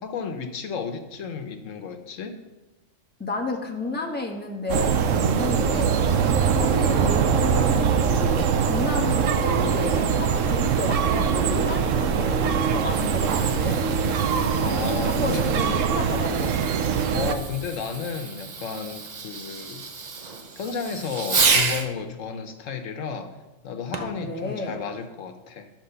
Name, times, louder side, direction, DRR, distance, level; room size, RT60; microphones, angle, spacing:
voice 1, 0.0-2.4 14.6-15.5 17.1-19.9 20.6-23.3 23.6-25.7, left 6 dB, 80° left, 7 dB, 1.1 m, -32 dB
voice 2, 3.2-6.0 6.6-13.8 15.1-16.5 23.9-24.8, left 2 dB, 10° left, -1 dB, 1.2 m, -31 dB
sound 1, 4.7-17.3, right 6 dB, 80° right, 1.0 m, -22 dB
Fireworks, 12.7-21.9 23.9-24.3 25.0-25.1, right 4 dB, 40° right, 0.7 m, -30 dB
10.5 x 4.5 x 6.7 m, 1.1 s
omnidirectional pair, 1.3 m